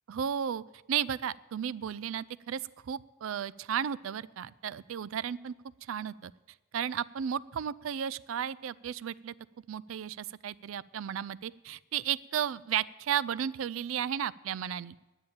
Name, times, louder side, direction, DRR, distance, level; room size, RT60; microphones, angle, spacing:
voice 1, 0.1-0.6 0.9-5.5 5.8-6.3 6.7-9.3 9.7-15.0, right 9 dB, 85° right, 20 dB, 0.4 m, -34 dB
10.5 x 8.8 x 8.8 m, 1.1 s
head